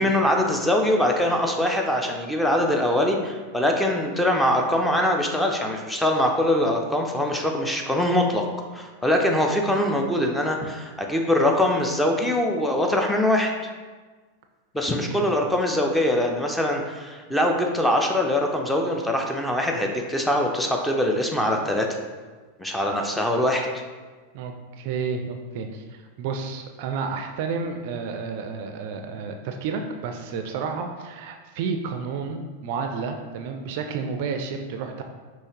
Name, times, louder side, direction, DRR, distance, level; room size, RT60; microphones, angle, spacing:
voice 1, 0.0-8.4 8.7-13.5 14.7-21.9 22.6-23.7, left 1 dB, 5° left, 2 dB, 0.5 m, -23 dB
voice 2, 24.3-25.8 26.2-35.0, right 5 dB, 50° right, 5 dB, 0.4 m, -31 dB
5.5 x 3.1 x 2.9 m, 1.4 s
figure-of-eight pair, 90°, 0 cm